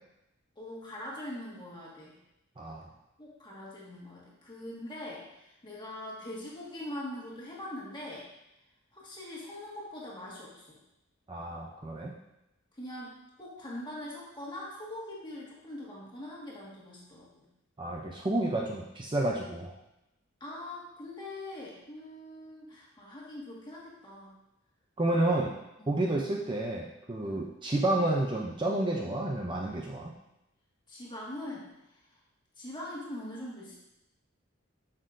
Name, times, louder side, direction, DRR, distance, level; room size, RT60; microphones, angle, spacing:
voice 1, 0.6-2.2 3.2-8.3 8.9-10.8 12.8-17.5 20.4-24.4 25.1-25.3 25.8-26.1 27.2-27.5 30.9-32.2 32.6-33.8, left 1 dB, 20° left, -5 dB, 1.8 m, -42 dB
voice 2, 11.3-12.1 17.8-19.7 25.0-25.5 25.9-30.1, right 2 dB, 25° right, -1 dB, 0.5 m, -30 dB
7.5 x 6.5 x 2.6 m, 0.88 s
head